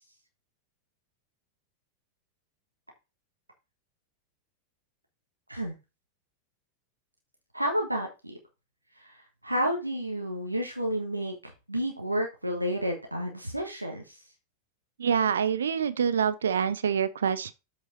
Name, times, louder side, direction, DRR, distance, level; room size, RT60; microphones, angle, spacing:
voice 1, 7.5-8.4 9.0-14.2, equal, 85° right, 1.4 m, -31 dB
voice 2, 15.0-17.5, right 7 dB, 65° right, 0.5 m, -26 dB
7.7 x 5.6 x 4.3 m
figure-of-eight pair, 90°, 0 cm